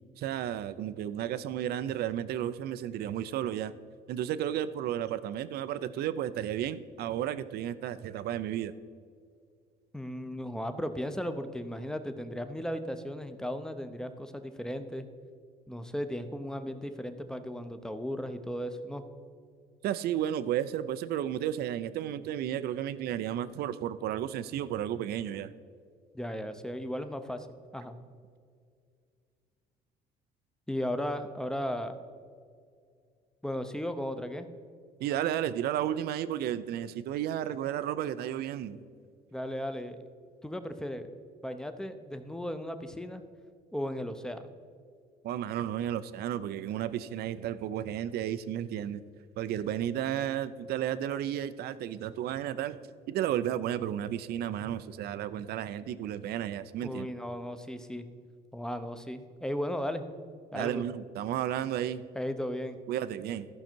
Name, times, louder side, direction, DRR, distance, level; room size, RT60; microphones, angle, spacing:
voice 1, 0.2-3.7 4.1-8.7 19.8-25.5 35.0-38.8 45.2-49.0 49.4-52.8 53.1-57.1 60.5-62.0 62.9-63.5, right 11 dB, 70° right, 14 dB, 0.5 m, -33 dB
voice 2, 9.9-15.1 15.7-19.0 26.1-27.5 27.7-27.9 30.7-32.0 33.4-34.5 39.3-40.0 40.4-41.1 41.4-43.2 43.7-44.5 56.8-58.0 58.5-60.0 60.5-60.8 62.1-62.8, equal, 5° left, 9 dB, 0.7 m, -36 dB
14.0 x 5.7 x 4.5 m, 2.2 s
cardioid pair, 110°, 17 cm